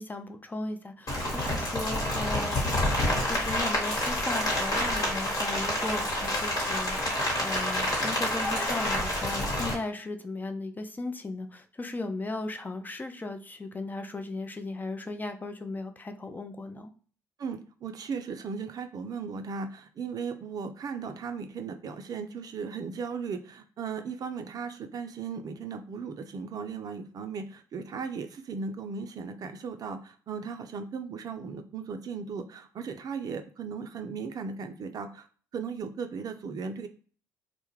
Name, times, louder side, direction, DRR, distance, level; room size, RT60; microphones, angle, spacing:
voice 1, 0.0-2.8 3.3-16.9, left 2 dB, 20° left, 6 dB, 0.4 m, -36 dB
Rain, 1.1-9.7, left 1 dB, 45° left, 1.3 m, -28 dB
voice 2, 17.4-35.3 35.5-36.9, right 5 dB, 50° right, 7 dB, 0.4 m, -37 dB
2.2 x 2.1 x 3.0 m, 0.42 s
hypercardioid pair, 50°, 8 cm